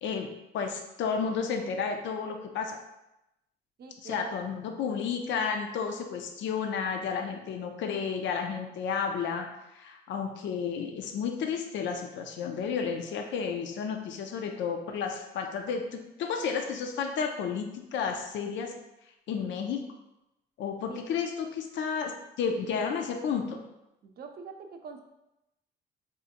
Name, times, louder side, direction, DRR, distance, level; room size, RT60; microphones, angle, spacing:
voice 1, 0.0-2.8 4.0-9.5 9.7-18.8 19.3-19.8 20.6-23.6, left 6 dB, 70° left, 4 dB, 0.5 m, -32 dB
voice 2, 3.8-4.4 20.9-21.0 24.0-25.0, right 5 dB, 50° right, 4 dB, 0.5 m, -43 dB
4.9 x 2.6 x 2.5 m, 0.92 s
cardioid pair, 90°, 20 cm